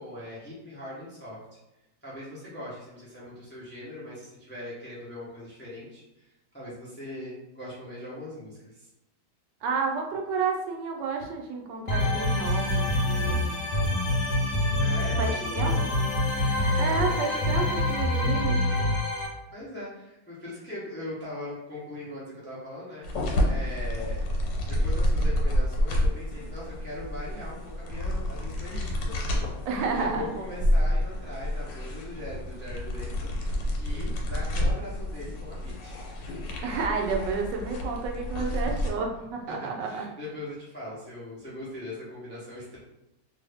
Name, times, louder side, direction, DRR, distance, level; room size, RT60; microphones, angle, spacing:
voice 1, 0.0-1.4 2.0-6.3 6.5-8.9 14.8-16.2 16.8-17.4 19.5-23.0 23.5-24.2 24.7-29.5 29.8-33.3 33.8-36.4 38.4-38.7 39.5-42.8, left 1 dB, 15° left, -7 dB, 0.3 m, -40 dB
voice 2, 9.6-13.6 15.2-16.0 16.8-18.6 29.7-30.3 36.6-40.0, right 4 dB, 80° right, 2 dB, 1.2 m, -31 dB
sound 1, 11.9-19.3, left 1 dB, 70° left, 1.2 m, -26 dB
sound 2, 23.0-38.9, left 1 dB, 90° left, 1.4 m, -29 dB
2.7 x 2.6 x 3.4 m, 0.92 s
omnidirectional pair, 1.9 m